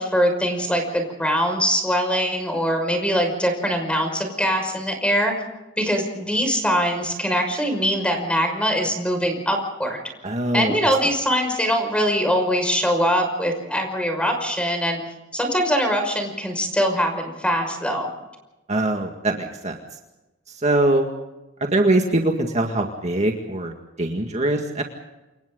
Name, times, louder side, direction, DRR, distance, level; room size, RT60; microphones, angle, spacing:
voice 1, 0.0-5.3 5.8-10.0 10.5-15.0 15.3-18.1, equal, 5° left, 4 dB, 5.7 m, -22 dB
voice 2, 10.2-10.7 18.7-19.8 20.6-21.1 21.7-23.7 24.0-24.8, right 2 dB, 35° right, 2 dB, 2.0 m, -22 dB
28.5 x 26.0 x 3.9 m, 1.0 s
head